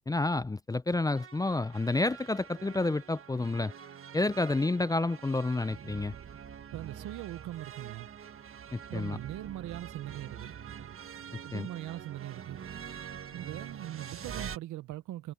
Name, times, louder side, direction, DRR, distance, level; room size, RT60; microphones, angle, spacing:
voice 1, 0.0-3.7 4.1-6.1 8.7-9.2 11.5-11.7, left 2 dB, 10° left, 0.5 m, -29 dB
sound 1, 1.2-14.6, right 8 dB, 45° right, 1.5 m, -45 dB
voice 2, 6.7-8.1 8.9-10.5 11.4-12.6 13.3-15.3, right 14 dB, 85° right, 0.9 m, -41 dB
cardioid pair, 90°, 30 cm